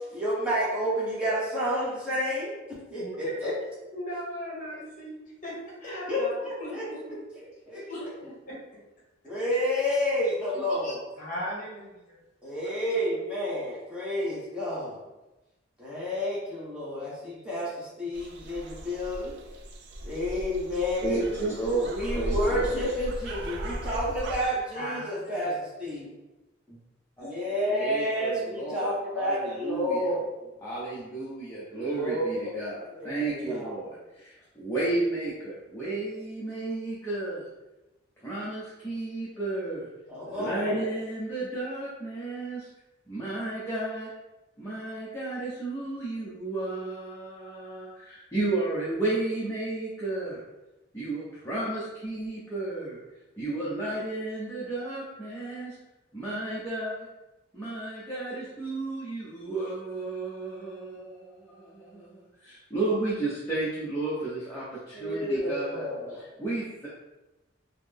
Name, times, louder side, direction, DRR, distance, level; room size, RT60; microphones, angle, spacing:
voice 1, 0.1-3.5 6.1-6.3 6.7-6.8 7.7-7.9 9.2-11.0 12.4-15.0 15.8-19.3 20.0-21.2 21.9-26.1 26.7-26.8 27.2-30.2 31.8-32.7 33.0-33.7 40.1-40.8 64.9-66.2, equal, 5° right, -9 dB, 1.0 m, -30 dB
voice 2, 3.0-3.5 3.9-5.5 5.8-6.3 6.6-7.0 7.9-8.6 10.5-12.2 24.7-25.6, equal, 40° left, -6 dB, 1.3 m, -38 dB
sound 1, 18.1-24.4, right 1 dB, 60° right, 0.4 m, -36 dB
voice 3, 21.0-22.9 27.2-27.3 27.7-30.1 30.6-37.5 38.2-39.9 40.3-42.7 43.1-44.1 44.6-50.4 50.9-53.0 53.4-55.8 56.1-57.1 57.5-66.9, right 2 dB, 15° left, -9 dB, 0.6 m, -33 dB
3.8 x 2.0 x 3.3 m, 1.0 s
head